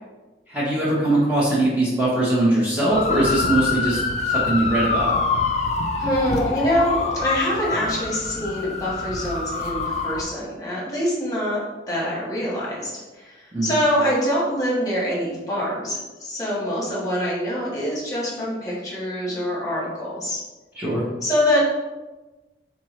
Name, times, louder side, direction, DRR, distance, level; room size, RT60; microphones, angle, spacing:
voice 1, 0.5-4.0 4.3-5.1 13.5-13.7 20.7-21.0, right 1 dB, 10° right, -8 dB, 0.9 m, -21 dB
sound 1, 2.9-10.2, left 4 dB, 40° left, 0.4 m, -25 dB
voice 2, 6.0-11.6 11.9-20.4 21.2-21.6, equal, 20° left, -5 dB, 1.3 m, -25 dB
4.4 x 3.7 x 3.1 m, 1.2 s
head